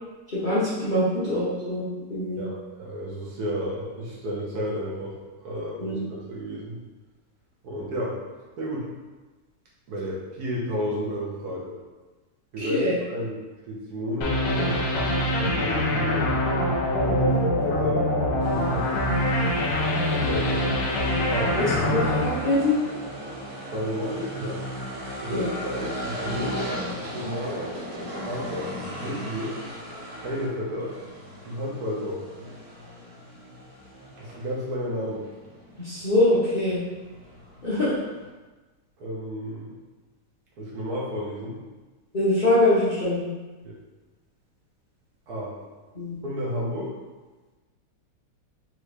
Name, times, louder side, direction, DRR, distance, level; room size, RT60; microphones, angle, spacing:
voice 1, 0.3-2.4 5.8-6.0 12.6-13.0 21.6-22.8 25.3-25.5 35.8-36.8 37.6-38.0 42.1-43.3 45.9-46.2, left 1 dB, 85° left, -11 dB, 0.4 m, -24 dB
voice 2, 2.4-6.8 7.6-8.2 8.6-8.9 9.9-11.7 12.5-12.8 13.1-13.4 13.7-16.2 17.0-18.0 18.5-18.9 20.0-20.7 21.3-22.1 23.7-24.6 25.2-26.8 27.1-27.7 28.2-29.6 30.2-30.9 31.4-32.2 34.2-35.3 39.0-39.7 40.6-41.6 43.6-43.8 45.3-45.5 46.2-46.9, equal, 60° right, -4 dB, 1.2 m, -32 dB
sound 1, 14.2-23.3, left 1 dB, 70° left, 1.1 m, -24 dB
sound 2, 18.4-38.3, equal, 85° right, 2.0 m, -38 dB
3.7 x 3.3 x 3.3 m, 1.2 s
omnidirectional pair, 2.3 m